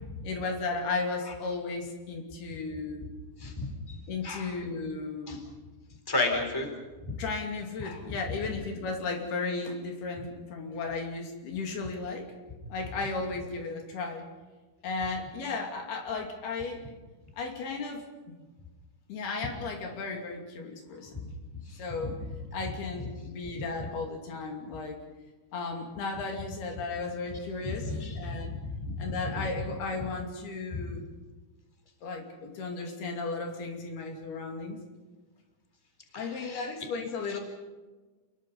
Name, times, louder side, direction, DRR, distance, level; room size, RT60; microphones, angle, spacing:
voice 1, 0.2-3.1 4.1-5.5 7.2-12.3 12.7-14.3 14.8-17.0 17.4-18.3 19.1-21.3 21.8-22.2 22.5-25.0 25.5-28.5 29.0-31.0 32.0-34.8 36.2-37.4, left 3 dB, 75° left, 2 dB, 4.7 m, -35 dB
voice 2, 3.4-4.5 5.3-5.4 6.1-6.7 7.0-7.1 7.8-8.0 21.1-21.2 21.7-22.1 27.6-29.0 29.3-29.7 30.7-30.8 36.1-36.7 37.3-37.4, left 2 dB, 5° left, 4 dB, 3.5 m, -34 dB
28.5 x 21.5 x 5.5 m, 1.3 s
omnidirectional pair, 4.6 m